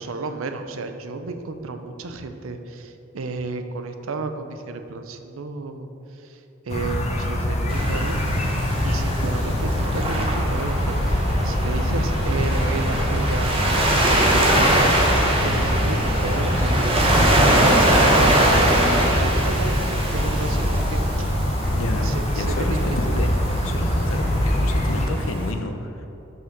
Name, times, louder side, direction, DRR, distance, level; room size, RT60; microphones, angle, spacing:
voice 1, 0.0-5.9 6.1-8.2 8.8-15.1 15.4-17.0 17.4-21.0 21.3-21.5 22.0-22.8, right 3 dB, 85° right, 7 dB, 0.6 m, -32 dB
sound 1, 6.7-25.1, left 1 dB, 35° left, 0.8 m, -24 dB
Waves surf, 7.7-25.5, right 1 dB, 25° right, 0.9 m, -23 dB
sound 2, 9.8-20.1 20.4-22.2 23.4-24.5, right 1 dB, ahead, 1.6 m, -35 dB
voice 2, 21.7-22.1 22.4-23.3 23.6-26.1, left 2 dB, 75° left, 6 dB, 0.6 m, -30 dB
5.7 x 5.6 x 6.0 m, 2.9 s
head